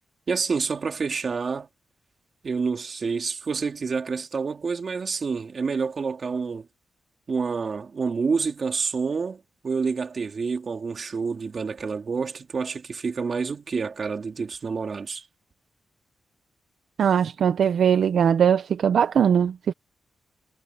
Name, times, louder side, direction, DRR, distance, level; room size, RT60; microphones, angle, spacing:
voice 1, 0.3-1.7 2.4-6.6 7.3-15.2, right 5 dB, 45° right, 3.3 m, -28 dB
voice 2, 17.0-19.7, right 8 dB, 70° right, 0.7 m, -20 dB
cardioid pair, 105°, 0 cm